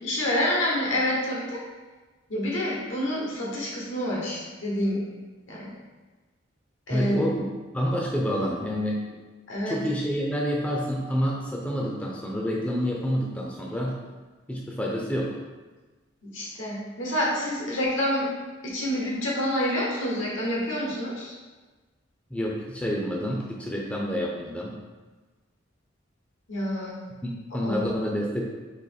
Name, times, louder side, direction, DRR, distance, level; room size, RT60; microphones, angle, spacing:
voice 1, 0.0-1.6 2.3-5.0 5.5-5.7 6.9-7.2 9.5-9.8 16.2-18.3 18.6-21.3 26.5-27.0 27.6-27.9, left 1 dB, 85° left, -4 dB, 1.3 m, -28 dB
voice 2, 6.9-9.0 9.7-14.0 14.5-15.4 22.3-24.8 27.2-28.4, equal, 5° left, -3 dB, 0.5 m, -28 dB
4.1 x 2.9 x 4.0 m, 1.3 s
head